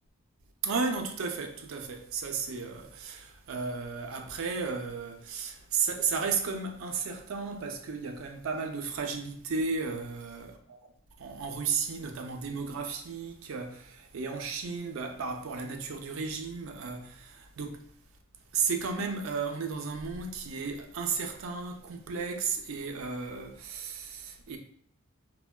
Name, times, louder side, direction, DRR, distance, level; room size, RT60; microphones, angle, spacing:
voice 1, 0.6-10.8 11.2-17.8 18.5-24.6, right 5 dB, 70° right, 0.4 m, -34 dB
3.2 x 2.1 x 2.2 m
head